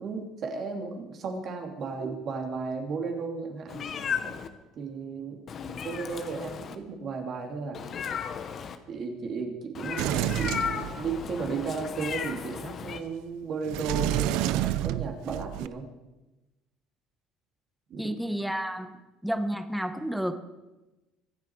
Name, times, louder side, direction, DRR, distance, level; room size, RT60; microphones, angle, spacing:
voice 1, 0.0-3.9 4.2-4.4 4.7-5.4 5.8-7.8 8.9-15.9 17.9-18.1, right 4 dB, 40° right, 2 dB, 2.8 m, -34 dB
Meow, 3.7-4.5 5.5-6.8 7.7-8.8 9.7-13.0, left 7 dB, 35° left, 1.1 m, -35 dB
Sliding door, 10.0-11.5 13.6-15.7, right 15 dB, 75° right, 0.5 m, -29 dB
voice 2, 18.0-18.9 19.2-20.4, equal, ahead, 9 dB, 1.1 m, -30 dB
24.5 x 11.0 x 4.7 m, 1.1 s
cardioid pair, 150°, 0 cm